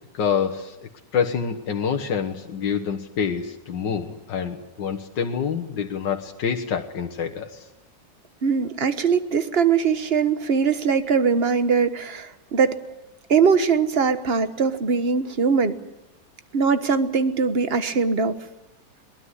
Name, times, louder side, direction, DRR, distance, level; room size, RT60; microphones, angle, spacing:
voice 1, 0.1-0.8 1.1-7.6, left 7 dB, 85° left, 4 dB, 2.0 m, -26 dB
voice 2, 8.4-12.8 13.3-15.8 16.5-18.4, right 5 dB, 35° right, 11 dB, 1.4 m, -21 dB
22.5 x 20.0 x 10.0 m, 0.90 s
omnidirectional pair, 1.9 m